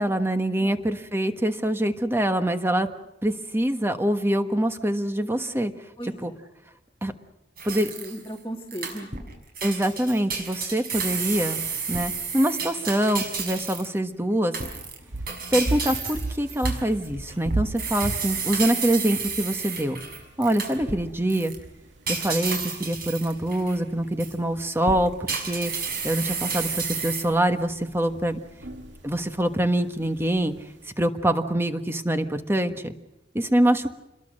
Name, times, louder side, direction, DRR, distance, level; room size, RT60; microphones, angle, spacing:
voice 1, 0.0-2.9 3.2-5.7 6.2-6.3 7.0-7.1 7.6-7.9 9.6-14.5 15.5-20.0 20.4-21.5 22.1-25.7 26.0-28.4 29.0-30.5 31.0-32.9 33.3-33.9, right 1 dB, 15° right, 7 dB, 1.4 m, -25 dB
voice 2, 6.0-6.4 7.7-9.3, right 1 dB, 10° left, -6 dB, 2.1 m, -37 dB
sound 1, 7.6-8.3 8.7-9.3 9.5-14.0 14.5-21.0 21.3-21.5 22.1-23.8 24.2-24.3 24.8-27.2, right 5 dB, 55° right, 5.7 m, -31 dB
sound 2, 15.0-30.9, right 2 dB, 80° right, 2.7 m, -37 dB
28.5 x 22.0 x 6.5 m, 0.95 s
head